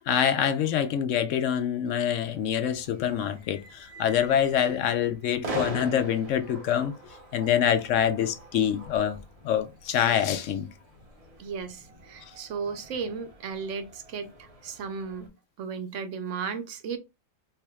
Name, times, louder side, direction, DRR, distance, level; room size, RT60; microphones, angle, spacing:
voice 1, 0.0-6.9 7.3-9.2 9.4-10.7, left 9 dB, 75° left, 0.9 m, -25 dB
sound 1, 2.1-15.3, right 2 dB, 35° right, 0.8 m, -43 dB
voice 2, 11.4-15.3 15.6-17.0, right 5 dB, 70° right, 0.9 m, -35 dB
4.6 x 2.7 x 2.3 m
omnidirectional pair, 1.4 m